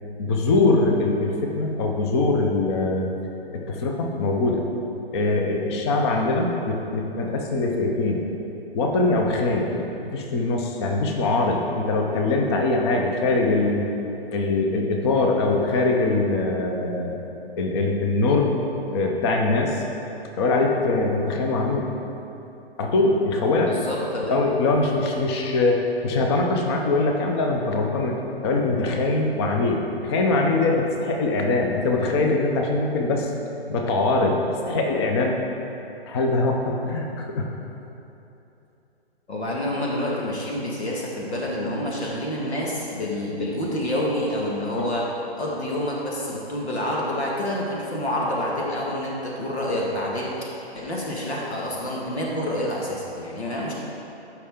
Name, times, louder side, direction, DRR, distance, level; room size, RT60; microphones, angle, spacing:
voice 1, 0.2-3.1 3.5-4.6 5.1-8.2 8.7-9.7 10.0-13.9 14.3-17.2 17.6-18.6 18.9-19.8 20.4-21.9 22.8-23.7 24.2-28.2 28.4-33.3 33.7-34.4 34.7-35.4 36.1-37.5 44.8-44.9, left 2 dB, 25° left, 1 dB, 0.7 m, -22 dB
voice 2, 23.6-24.4 39.3-45.1 45.4-53.7, left 1 dB, 80° left, -4 dB, 2.0 m, -28 dB
14.0 x 5.7 x 3.7 m, 2.9 s
hypercardioid pair, 145°, 32 cm